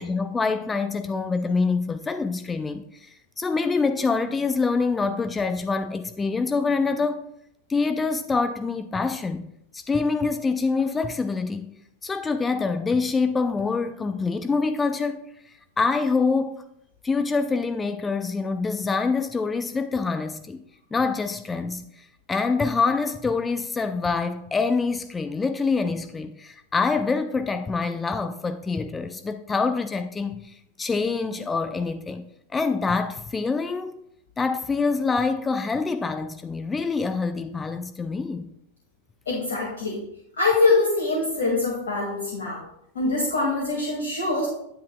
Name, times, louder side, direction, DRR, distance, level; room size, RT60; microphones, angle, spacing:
voice 1, 0.0-7.2 7.7-11.7 12.0-15.2 15.8-16.6 17.0-20.6 20.9-34.0 34.4-38.5, left 4 dB, 15° left, 0.4 m, -25 dB
voice 2, 39.3-40.0 40.4-42.6 43.0-44.5, left 3 dB, 60° left, 2.0 m, -23 dB
10.0 x 9.6 x 2.2 m
figure-of-eight pair, 90°, 0 cm